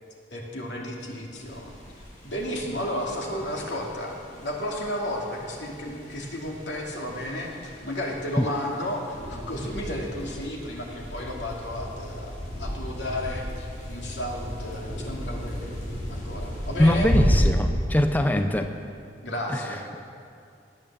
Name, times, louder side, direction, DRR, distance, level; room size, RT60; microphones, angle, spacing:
voice 1, 0.3-1.7 2.2-9.0 9.3-15.8 16.1-17.1 18.3-18.4 19.2-20.0, left 1 dB, 80° left, -1 dB, 2.8 m, -33 dB
sound 1, 1.3-17.4, equal, 45° left, 4.7 m, -34 dB
voice 2, 16.8-18.7 19.5-19.6, left 1 dB, 10° left, 6 dB, 0.5 m, -22 dB
19.0 x 9.0 x 7.6 m, 2.4 s
head